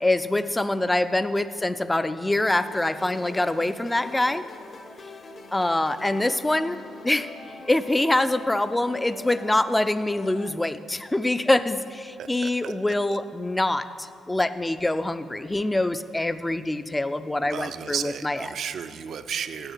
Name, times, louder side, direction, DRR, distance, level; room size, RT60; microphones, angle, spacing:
voice 1, 0.0-4.4 5.5-6.8 7.0-7.3 7.7-18.4, left 1 dB, 15° left, 13 dB, 0.4 m, -25 dB
sound 1, 2.5-10.5, left 3 dB, 40° left, 0.8 m, -44 dB
voice 2, 12.2-12.7 13.1-13.2 17.4-19.7, right 8 dB, 60° right, 11 dB, 0.4 m, -33 dB
9.0 x 6.5 x 5.7 m, 2.3 s
cardioid pair, 90°, 0 cm